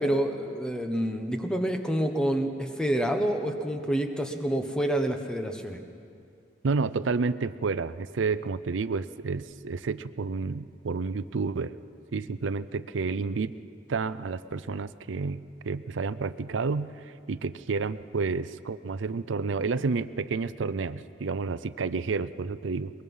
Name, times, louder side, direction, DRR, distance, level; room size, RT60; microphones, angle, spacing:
voice 1, 0.0-5.8, right 1 dB, 5° left, 5 dB, 1.1 m, -28 dB
voice 2, 6.6-11.7 12.1-13.5 13.9-22.9, right 4 dB, 90° right, 14 dB, 0.5 m, -30 dB
22.5 x 21.0 x 5.5 m, 2.4 s
head